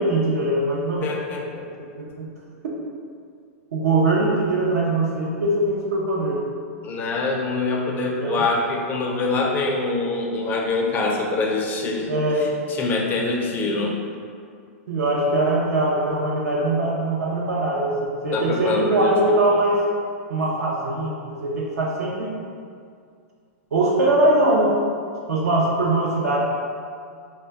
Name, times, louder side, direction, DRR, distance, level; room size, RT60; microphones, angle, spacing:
voice 1, 0.0-1.1 2.0-2.3 3.7-6.4 8.2-8.5 12.0-12.5 14.9-19.8 20.3-22.4 23.7-24.8 25.3-26.4, right 2 dB, 90° right, -3 dB, 0.5 m, -21 dB
voice 2, 1.0-1.7 6.8-12.1 12.4-14.0 18.3-19.6, left 3 dB, 25° left, 0 dB, 0.4 m, -25 dB
2.2 x 2.1 x 3.4 m, 2.2 s
hypercardioid pair, 135°, 8 cm